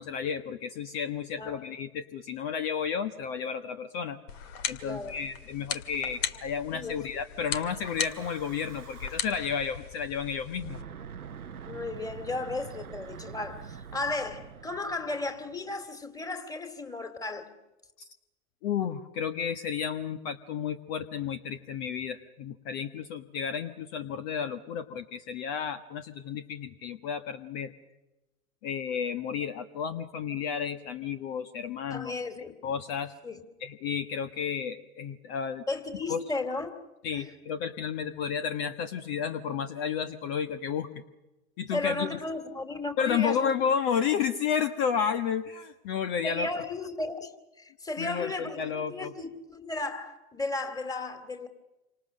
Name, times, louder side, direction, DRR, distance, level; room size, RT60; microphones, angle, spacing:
voice 1, 0.0-4.2 4.7-10.8 18.6-27.7 28.6-32.1 32.6-33.1 33.6-35.6 36.1-36.2 37.0-40.9 41.6-42.1 43.0-46.5 48.0-49.1, left 7 dB, 45° left, 1.4 m, -32 dB
sound 1, 4.3-10.8, left 7 dB, 60° left, 2.1 m, -38 dB
voice 2, 4.8-5.2 6.7-7.1 11.7-17.5 31.9-32.5 33.2-33.4 35.7-36.8 37.1-37.3 41.7-43.5 46.2-47.3 47.6-51.5, left 2 dB, 10° left, 2.6 m, -34 dB
Breathing / Wind, 7.6-9.6 10.5-15.8, right 7 dB, 90° right, 1.1 m, -45 dB
28.0 x 26.0 x 6.5 m
hypercardioid pair, 105°, 43 cm